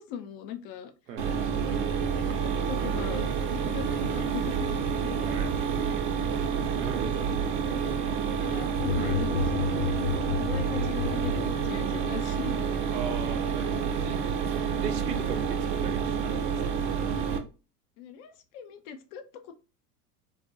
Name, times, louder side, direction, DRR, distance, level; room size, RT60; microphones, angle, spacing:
voice 1, 0.0-0.9 2.0-3.3 3.5-5.2 7.7-8.0 8.2-10.0 10.4-12.7 18.0-19.5, left 8 dB, 40° left, 0.4 m, -40 dB
Mechanisms, 1.2-17.4, right 6 dB, 40° right, 0.6 m, -29 dB
voice 2, 5.2-5.5 6.8-7.3 9.0-9.2 12.9-14.2 14.5-16.6, right 7 dB, 75° right, 0.7 m, -38 dB
sound 1, 8.8-12.0, left 7 dB, 80° left, 0.7 m, -31 dB
2.3 x 2.1 x 2.6 m
hypercardioid pair, 85°, 49 cm